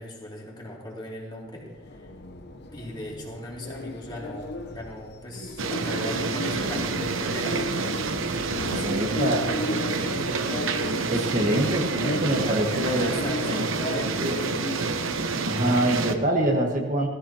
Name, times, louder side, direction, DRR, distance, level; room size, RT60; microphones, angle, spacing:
voice 1, 0.0-2.1 2.7-7.7 8.5-9.7 11.2-11.6 12.4-14.6, left 1 dB, 20° left, -3 dB, 2.7 m, -38 dB
sound 1, 1.5-15.6, left 1 dB, 55° left, 0.9 m, -36 dB
sound 2, 5.6-16.1, right 3 dB, 80° right, 0.9 m, -28 dB
voice 2, 8.8-9.4 9.7-9.8 11.1-13.2 13.5-14.4 15.4-17.1, right 1 dB, 40° right, 1 dB, 1.5 m, -25 dB
16.0 x 15.0 x 2.9 m, 1.2 s
head